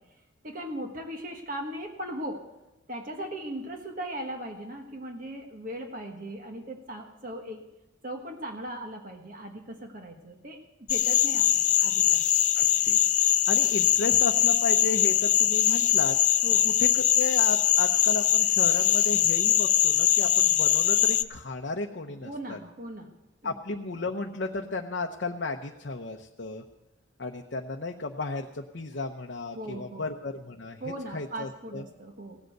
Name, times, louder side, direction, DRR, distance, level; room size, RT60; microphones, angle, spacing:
voice 1, 0.4-2.4 2.9-7.6 8.0-12.2 16.4-16.7 22.1-23.1 23.4-23.5 29.5-30.1 30.8-32.4, right 1 dB, 40° right, 3 dB, 1.4 m, -38 dB
sound 1, 10.9-21.2, left 12 dB, 40° left, 0.5 m, -22 dB
voice 2, 12.6-13.0 13.5-16.2 16.6-22.6 23.4-26.6 27.2-31.8, left 3 dB, 60° left, 2 dB, 0.8 m, -34 dB
17.0 x 7.8 x 7.9 m, 0.96 s
head